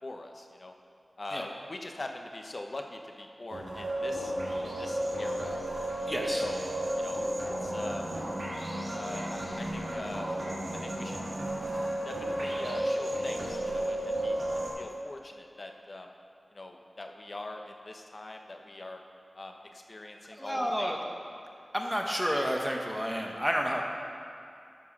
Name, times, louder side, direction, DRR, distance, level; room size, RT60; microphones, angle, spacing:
voice 1, 0.0-0.7 1.2-4.3 4.6-5.6 6.3-6.6 7.0-8.1 8.9-10.3 10.7-11.2 12.0-16.1 16.5-19.0 19.3-21.0, left 2 dB, 55° left, 3 dB, 0.9 m, -43 dB
sound 1, 3.5-14.7, right 1 dB, 65° right, 2.6 m, -33 dB
voice 2, 6.1-6.4 20.3-21.0 21.7-23.8, equal, 5° right, 0 dB, 1.1 m, -30 dB
13.0 x 4.7 x 6.0 m, 2.6 s
wide cardioid pair, 70°, 0 cm